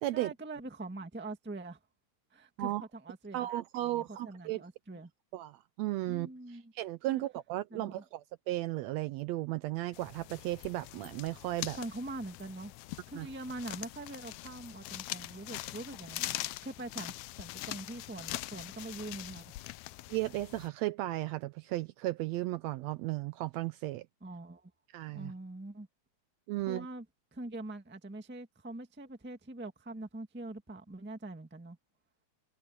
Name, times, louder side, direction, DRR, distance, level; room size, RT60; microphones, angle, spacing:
voice 1, 0.1-1.8 2.3-5.1 6.1-6.7 7.1-7.2 7.7-8.0 11.8-12.7 13.1-19.5 24.2-24.7 25.1-25.9 26.7-27.0 27.3-31.8, right 2 dB, 10° right, 0.6 m, -43 dB
voice 2, 3.3-4.6 5.3-11.8 13.1-13.3 20.1-24.1 24.9-25.3 26.5-26.9, right 16 dB, 80° right, 1.6 m, -35 dB
sound 1, 9.9-20.7, left 17 dB, 80° left, 1.8 m, -43 dB
omnidirectional pair, 3.4 m